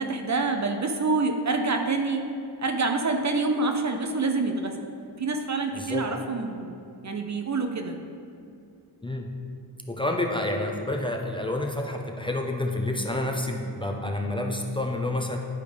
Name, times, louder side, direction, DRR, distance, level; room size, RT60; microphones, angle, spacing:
voice 1, 0.0-2.2 2.6-4.8 5.2-6.7 7.0-8.0, right 3 dB, 40° right, 5 dB, 0.6 m, -26 dB
voice 2, 5.7-6.1 9.0-9.3 9.9-15.4, left 1 dB, 10° left, 1 dB, 0.5 m, -29 dB
10.5 x 4.9 x 3.4 m, 2.5 s
wide cardioid pair, 105°, 42 cm